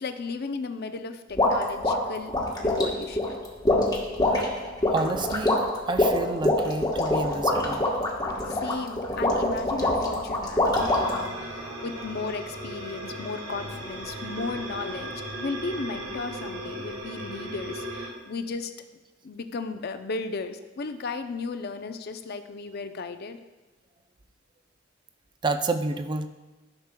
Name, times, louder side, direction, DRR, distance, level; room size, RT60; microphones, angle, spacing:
voice 1, 0.0-3.4 8.5-18.7 19.2-23.4, left 4 dB, 55° left, 9 dB, 0.5 m, -35 dB
sound 1, 1.4-11.3, left 1 dB, 20° left, 1.1 m, -25 dB
voice 2, 4.9-7.8 11.6-11.8 18.1-18.2 25.4-26.3, right 3 dB, 25° right, 8 dB, 0.4 m, -29 dB
sound 2, 10.8-18.1, right 1 dB, 80° right, 1.4 m, -37 dB
12.5 x 6.0 x 2.2 m, 1.1 s
head